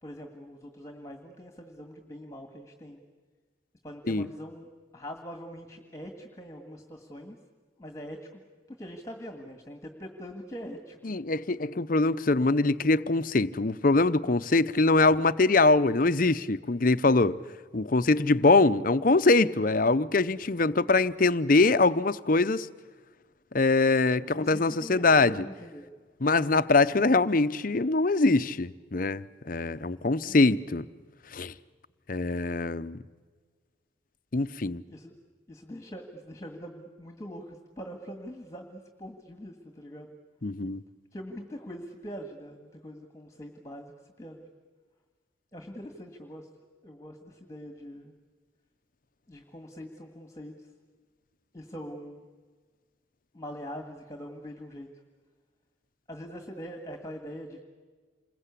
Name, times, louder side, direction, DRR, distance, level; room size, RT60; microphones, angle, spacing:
voice 1, 0.0-3.0 3.8-7.4 7.8-8.4 8.7-11.2 24.2-25.9 30.3-30.4 34.9-35.1 35.5-40.2 41.1-44.5 45.5-46.5 46.8-48.1 49.3-50.7 51.5-52.3 53.3-54.9 56.1-57.6, equal, 15° left, 1.8 m, -43 dB
voice 2, 11.1-17.4 17.7-22.7 23.5-25.3 26.2-30.8 31.3-31.5 32.1-33.0 34.3-34.8 40.4-40.8, left 3 dB, 45° left, 0.7 m, -23 dB
28.0 x 21.5 x 8.4 m
head